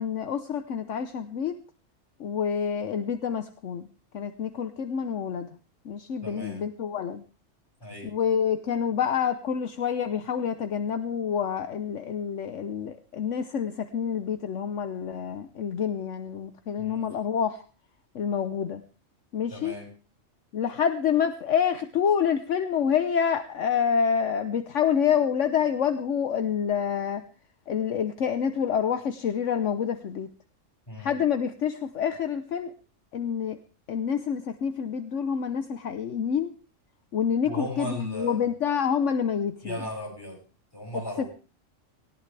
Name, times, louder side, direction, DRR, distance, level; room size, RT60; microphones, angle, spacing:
voice 1, 0.0-1.5 2.2-3.9 4.1-5.5 5.8-7.2 8.0-17.6 18.1-18.8 19.3-19.8 20.5-27.2 27.7-30.3 31.0-32.7 33.1-33.6 33.9-36.5 37.1-39.8 41.2-41.3, left 7 dB, 70° left, 9 dB, 1.2 m, -27 dB
voice 2, 6.2-6.6 7.8-8.1 16.8-17.1 19.5-19.9 30.9-31.2 37.4-38.5 39.6-40.4 40.7-41.3, left 1 dB, 15° left, -1 dB, 7.0 m, -36 dB
18.5 x 17.5 x 3.4 m, 0.35 s
omnidirectional pair, 1.4 m